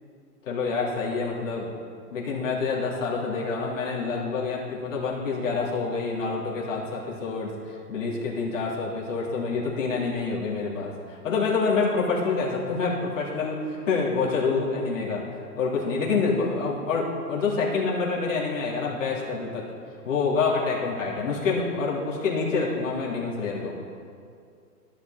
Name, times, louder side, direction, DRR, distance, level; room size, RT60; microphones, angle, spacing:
voice 1, 0.5-1.7 2.1-15.2 15.6-19.6 20.0-23.7, left 4 dB, 50° left, -5 dB, 3.4 m, -27 dB
13.5 x 11.5 x 4.0 m, 2.3 s
hypercardioid pair, 160°, 48 cm